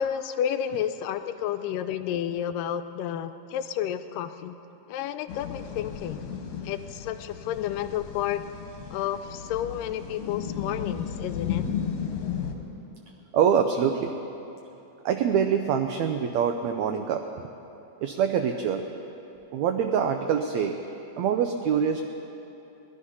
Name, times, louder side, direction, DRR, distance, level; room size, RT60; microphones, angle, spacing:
voice 1, 0.0-4.5 4.9-6.2 6.6-8.4 8.9-11.6, left 10 dB, 90° left, 10 dB, 2.2 m, -31 dB
sound 1, 5.3-12.5, left 8 dB, 60° left, 2.0 m, -34 dB
voice 2, 13.3-14.1 15.0-17.5 18.0-18.8 19.5-20.8 21.2-22.0, right 7 dB, 75° right, 5 dB, 1.6 m, -25 dB
20.5 x 12.0 x 5.6 m, 2.9 s
omnidirectional pair, 3.8 m